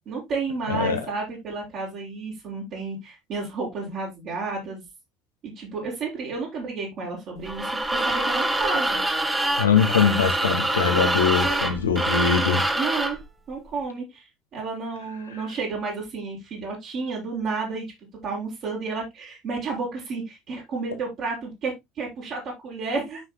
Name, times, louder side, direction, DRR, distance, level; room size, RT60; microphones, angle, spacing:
voice 1, 0.1-4.8 5.4-9.0 12.8-13.2 13.5-17.9 18.2-23.2, right 4 dB, 50° right, 6.4 m, -31 dB
voice 2, 0.7-1.0 9.6-12.6, left 7 dB, 85° left, 1.7 m, -22 dB
sound 1, 7.5-13.2, right 1 dB, 15° right, 2.1 m, -25 dB
13.5 x 5.9 x 2.2 m
hypercardioid pair, 65°, 0 cm